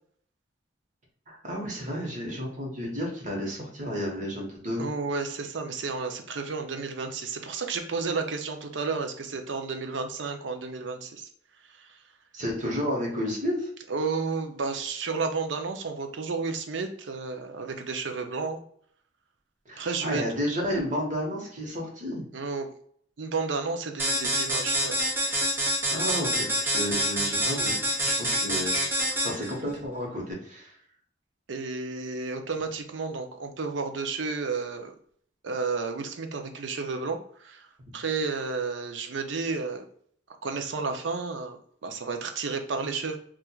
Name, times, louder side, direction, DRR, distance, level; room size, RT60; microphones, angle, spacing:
voice 1, 1.3-4.8 12.3-13.7 19.7-22.2 25.9-28.9 29.2-30.8, equal, 40° right, -2 dB, 1.1 m, -31 dB
voice 2, 4.8-11.3 11.8-12.0 13.9-18.6 19.8-20.2 22.3-22.7 23.2-24.9 31.5-34.9 35.4-37.7 37.9-39.8 40.4-43.2, right 4 dB, 75° right, 6 dB, 0.5 m, -32 dB
sound 1, 24.0-29.5, equal, 10° right, 0.6 m, -26 dB
4.3 x 2.4 x 2.3 m, 0.62 s
head